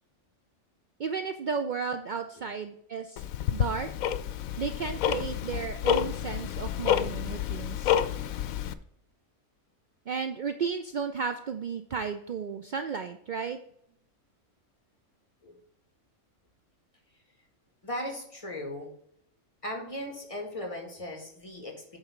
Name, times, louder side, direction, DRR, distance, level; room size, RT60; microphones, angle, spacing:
voice 1, 1.0-3.2 3.5-3.9 4.6-8.0 10.1-13.6, right 6 dB, 70° right, 8 dB, 0.4 m, -33 dB
Tick-tock, 3.2-8.7, left 10 dB, 85° left, 1.0 m, -29 dB
voice 2, 17.8-18.9 19.6-22.0, left 1 dB, 25° left, 2 dB, 1.9 m, -37 dB
8.7 x 3.7 x 5.9 m, 0.71 s
omnidirectional pair, 1.4 m